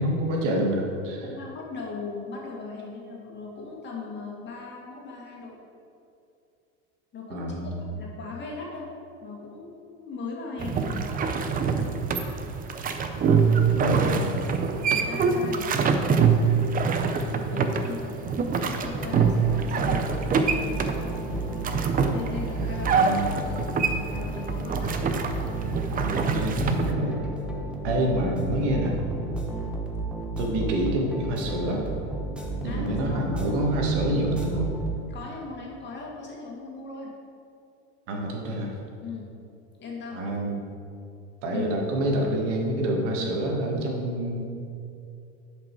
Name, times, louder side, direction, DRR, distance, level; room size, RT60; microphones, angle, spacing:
voice 1, 0.0-1.3 7.3-7.9 13.7-14.4 22.9-23.5 24.8-25.0 25.9-27.2 27.8-29.0 30.4-31.9 32.6-34.7 38.1-38.7 40.1-40.6 41.4-44.4, right 1 dB, 80° right, 0 dB, 1.8 m, -27 dB
voice 2, 1.2-5.6 7.1-7.5 7.9-8.9 9.2-11.1 13.4-13.7 14.0-14.1 14.8-21.7 22.1-23.2 23.9-25.0 29.5-29.7 32.6-33.2 35.1-37.1 39.0-39.3 39.8-40.3 41.5-41.7, left 4 dB, 30° left, -2 dB, 2.1 m, -39 dB
sound 1, 10.6-26.9, right 5 dB, 25° right, 0.6 m, -25 dB
sound 2, 18.9-35.3, right 2 dB, 5° right, 1.0 m, -33 dB
10.5 x 5.3 x 4.6 m, 2.6 s
supercardioid pair, 125°, 36 cm